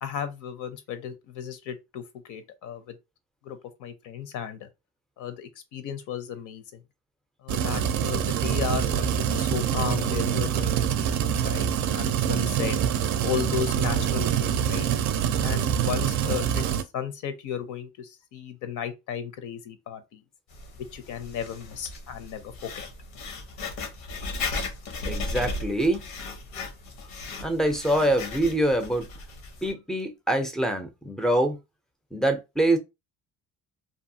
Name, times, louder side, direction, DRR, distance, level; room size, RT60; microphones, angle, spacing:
voice 1, 0.0-3.0 3.4-4.7 5.2-6.6 7.4-12.8 13.2-14.9 15.4-16.6 16.9-20.2 20.9-22.9, left 8 dB, 70° left, 0.6 m, -34 dB
sound 1, 7.5-16.8, right 9 dB, 65° right, 0.4 m, -25 dB
Writing, 20.5-29.7, left 3 dB, 90° left, 0.9 m, -36 dB
voice 2, 25.0-26.0 27.4-29.1 29.6-31.6 32.1-32.8, right 1 dB, ahead, 0.4 m, -24 dB
2.7 x 2.3 x 2.6 m
cardioid pair, 110°, 32 cm